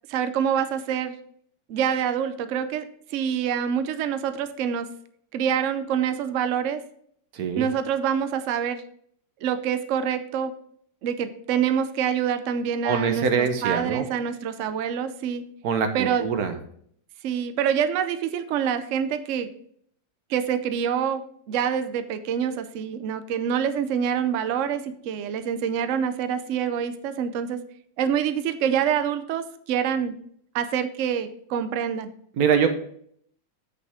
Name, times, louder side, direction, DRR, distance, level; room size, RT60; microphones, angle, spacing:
voice 1, 0.1-1.1 1.7-2.8 3.1-4.9 5.3-6.8 7.6-8.8 9.4-10.5 11.0-15.4 15.9-16.3 17.2-19.5 20.3-27.6 28.0-30.1 30.5-32.1, right 8 dB, 85° right, 11 dB, 0.6 m, -26 dB
voice 2, 7.3-7.7 12.8-14.0 15.6-16.5 32.4-32.7, right 6 dB, 60° right, 7 dB, 1.3 m, -23 dB
8.1 x 6.5 x 3.6 m, 0.64 s
omnidirectional pair, 2.0 m